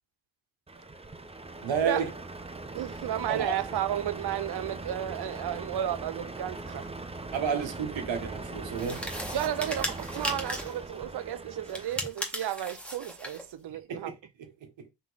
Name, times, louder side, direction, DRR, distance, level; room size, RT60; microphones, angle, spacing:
Truck, 0.7-11.9, right 2 dB, 15° right, 0.5 m, -40 dB
voice 1, 1.6-2.1 3.3-3.6 7.3-9.1 13.7-14.7, right 6 dB, 85° right, 1.4 m, -31 dB
voice 2, 2.7-6.9 9.3-14.1, right 11 dB, 60° right, 0.6 m, -33 dB
sound 1, 8.8-10.8 11.7-13.5, equal, 5° left, 1.5 m, -36 dB
3.7 x 3.0 x 4.0 m
cardioid pair, 65°, 44 cm